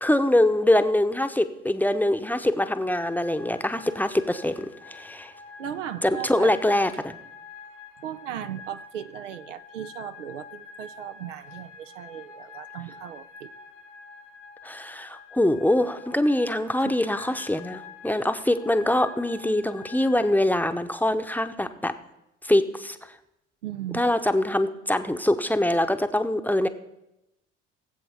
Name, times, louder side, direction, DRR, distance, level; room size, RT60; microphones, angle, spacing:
voice 1, 0.0-5.3 6.0-7.2 14.6-21.9 22.4-23.0 23.9-26.7, left 1 dB, 5° left, 8 dB, 0.8 m, -24 dB
sound 1, 2.9-20.4, left 4 dB, 80° left, 1.8 m, -46 dB
voice 2, 5.6-6.5 8.0-13.5 16.8-16.9 23.6-24.1, right 10 dB, 85° right, 11 dB, 0.6 m, -37 dB
20.0 x 7.8 x 3.5 m, 0.88 s
figure-of-eight pair, 60°, 36 cm